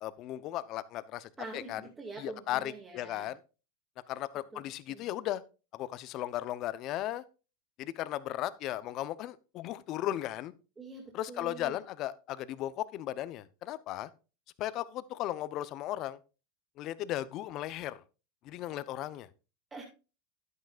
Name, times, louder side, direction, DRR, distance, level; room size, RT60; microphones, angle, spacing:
voice 1, 0.0-1.8 2.2-3.4 4.1-5.4 5.7-7.2 7.8-10.5 11.1-14.1 14.6-16.2 16.8-18.0 18.4-19.3, left 13 dB, 50° left, 0.7 m, -36 dB
voice 2, 1.4-3.3 4.5-4.6 4.9-5.1 10.8-11.8 19.7-19.8, right 3 dB, 20° right, 2.2 m, -45 dB
11.0 x 9.4 x 2.5 m
hypercardioid pair, 100°, 0 cm